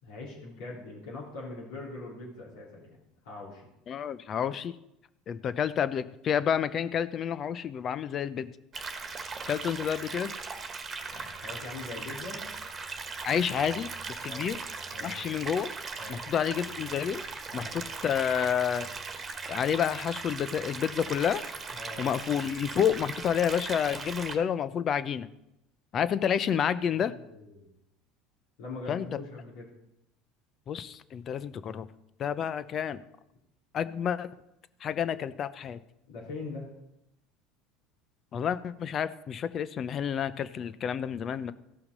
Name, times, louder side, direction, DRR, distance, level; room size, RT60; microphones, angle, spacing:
voice 1, 0.0-2.9 3.2-3.7 11.1-12.4 14.2-14.5 14.9-15.2 16.0-16.2 17.5-17.8 21.7-22.1 26.9-27.7 28.6-29.7 36.1-36.7, left 3 dB, 75° left, -5 dB, 3.4 m, -42 dB
voice 2, 3.9-4.7 5.3-8.5 9.5-10.3 13.2-14.6 15.0-15.7 16.1-17.2 17.5-18.9 19.5-21.4 22.0-25.3 25.9-27.1 28.9-29.1 30.7-31.9 32.2-33.0 33.7-34.3 34.8-35.8 38.3-41.5, left 8 dB, 45° left, 15 dB, 0.6 m, -29 dB
sound 1, 8.7-24.4, right 4 dB, 30° right, 1.5 m, -39 dB
15.0 x 5.8 x 5.3 m, 0.86 s
hypercardioid pair, 85°, 0 cm